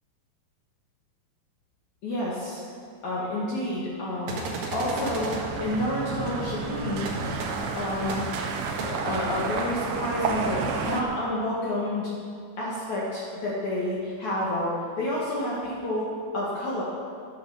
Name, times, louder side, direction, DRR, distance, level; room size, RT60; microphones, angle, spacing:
voice 1, 2.0-2.6 3.0-4.4 4.7-5.3 5.6-7.1 7.7-8.2 8.8-12.1 12.6-16.1 16.3-16.8, left 1 dB, 50° left, -6 dB, 2.7 m, -29 dB
sound 1, 4.3-5.4 7.1-7.2 7.4-7.5 8.1-8.2 8.8-8.9, right 3 dB, 60° right, 3.1 m, -33 dB
sound 2, 4.8-11.0, right 5 dB, 75° right, 1.8 m, -31 dB
12.0 x 10.0 x 7.1 m, 2.2 s
omnidirectional pair, 5.0 m